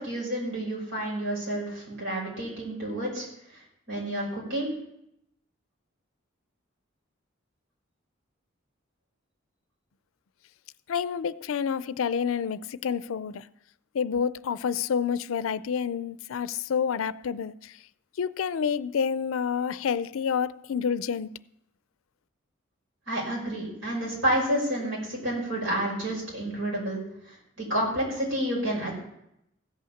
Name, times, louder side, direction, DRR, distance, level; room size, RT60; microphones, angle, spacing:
voice 1, 0.0-3.3 3.9-4.7 23.1-27.0 27.3-28.9, right 1 dB, 80° right, 6.0 m, -29 dB
voice 2, 10.9-13.5 13.9-17.8 18.2-21.3, left 7 dB, 90° left, 0.4 m, -28 dB
15.5 x 5.7 x 7.1 m
head